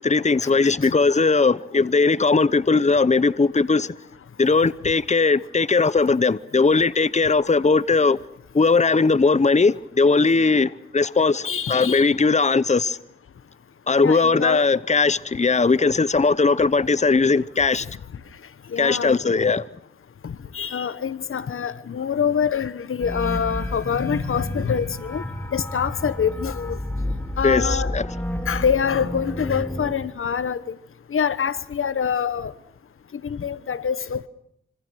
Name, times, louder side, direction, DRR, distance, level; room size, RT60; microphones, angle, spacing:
voice 1, 0.0-3.9 4.4-8.2 8.5-13.0 13.9-17.9 18.8-19.6 27.4-28.1, left 4 dB, 35° left, 0.9 m, -19 dB
voice 2, 11.4-12.1 14.0-14.6 18.7-19.2 20.2-25.2 25.5-26.8 27.4-27.9 28.5-30.7 31.1-32.5 33.2-34.3, left 7 dB, 80° left, 1.1 m, -25 dB
sound 1, 23.0-29.9, left 1 dB, 10° left, 3.8 m, -30 dB
26.0 x 26.0 x 6.3 m
cardioid pair, 55°, 21 cm